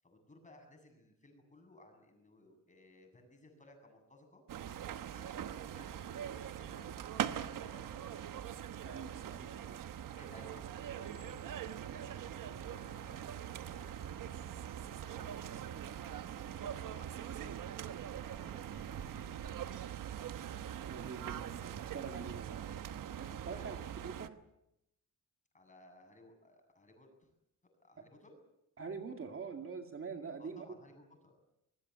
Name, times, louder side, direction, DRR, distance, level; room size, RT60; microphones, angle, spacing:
voice 1, 0.0-4.4 4.9-6.9 7.1-8.0 10.0-15.9 16.5-17.6 18.2-20.0 23.4-24.1 25.5-27.3 27.8-28.4 30.4-31.3, left 1 dB, 25° left, 5 dB, 7.9 m, -60 dB
sound 1, 4.5-24.3, right 10 dB, 85° right, 1.2 m, -42 dB
voice 2, 8.8-9.9 20.8-22.6 23.2-24.4 28.0-28.1 28.8-30.7, right 5 dB, 45° right, 4 dB, 2.4 m, -45 dB
24.5 x 21.0 x 8.2 m, 0.84 s
wide cardioid pair, 125°, 32 cm